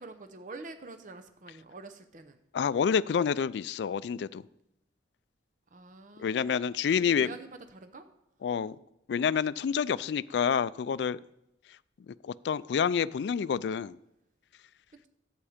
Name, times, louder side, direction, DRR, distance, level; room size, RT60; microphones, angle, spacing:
voice 1, 0.0-2.4 5.7-8.1 14.9-15.1, right 3 dB, 45° right, 8 dB, 0.7 m, -47 dB
voice 2, 2.5-4.4 6.2-7.3 8.4-8.8 9.1-11.2 12.1-14.0, left 7 dB, 65° left, 18 dB, 0.3 m, -28 dB
11.5 x 8.4 x 5.0 m, 0.84 s
head